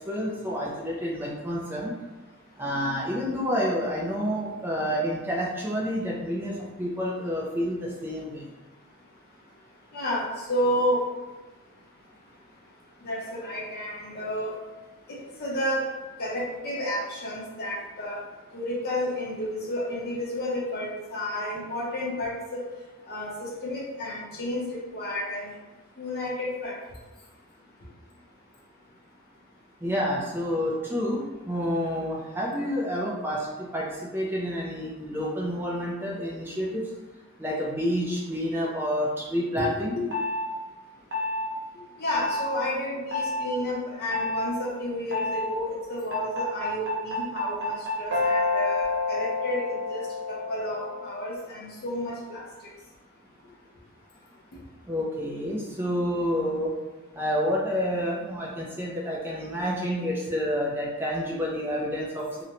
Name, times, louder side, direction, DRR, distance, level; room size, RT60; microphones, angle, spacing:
voice 1, 0.1-1.9 2.6-8.5 29.8-36.8 37.4-39.9 54.9-56.7 57.1-62.3, equal, 10° right, -4 dB, 0.3 m, -29 dB
voice 2, 9.9-11.0 13.0-14.6 15.1-15.8 16.2-18.2 18.5-22.6 23.1-25.5 26.0-26.8 39.6-40.1 42.0-52.4 60.3-60.4, left 1 dB, 50° left, -4 dB, 0.7 m, -31 dB
sound 1, 40.1-40.5 41.1-41.5 42.1-42.5 43.1-43.4 44.1-44.5 45.1-45.5 46.1-51.2, left 3 dB, 55° right, 0.6 m, -28 dB
2.5 x 2.1 x 2.8 m, 1.1 s
head